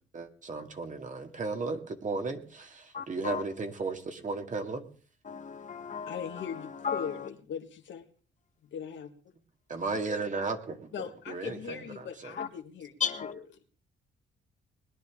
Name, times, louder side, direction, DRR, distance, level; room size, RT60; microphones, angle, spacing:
voice 1, 0.1-4.9 9.7-10.9 11.3-12.4, right 4 dB, 40° right, 6 dB, 2.1 m, -35 dB
voice 2, 2.9-3.4 5.3-7.3 12.4-12.5 13.0-13.3, left 6 dB, 40° left, 8 dB, 1.1 m, -35 dB
voice 3, 6.1-8.1 8.7-9.1 10.9-12.9 13.2-13.4, left 8 dB, 70° left, 6 dB, 1.7 m, -39 dB
21.0 x 10.5 x 3.7 m, 0.41 s
cardioid pair, 90°, 20 cm